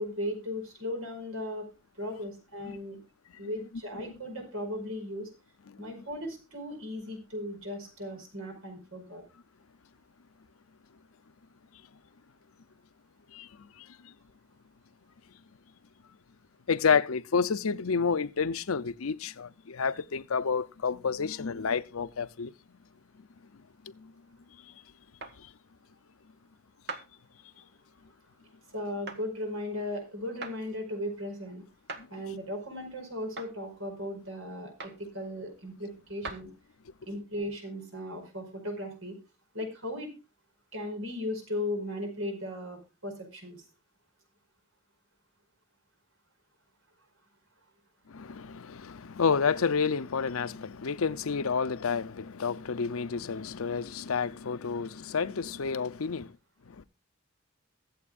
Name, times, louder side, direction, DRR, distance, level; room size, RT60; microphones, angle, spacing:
voice 1, 0.0-1.7 2.0-3.0 3.4-5.3 5.8-9.2 28.7-31.6 32.1-36.5 37.0-39.2 39.5-40.1 40.7-43.6, left 1 dB, 75° right, 5.1 m, -37 dB
voice 2, 16.7-22.5 25.4-25.5 48.1-56.3 56.8-56.9, left 5 dB, 85° left, 0.7 m, -29 dB
sound 1, 25.2-25.4 26.9-27.1 29.1-29.2 30.4-30.6 31.9-32.1 33.4-33.5 34.8-35.0 36.2-36.4, right 3 dB, 55° right, 1.4 m, -39 dB
22.5 x 7.9 x 2.4 m
head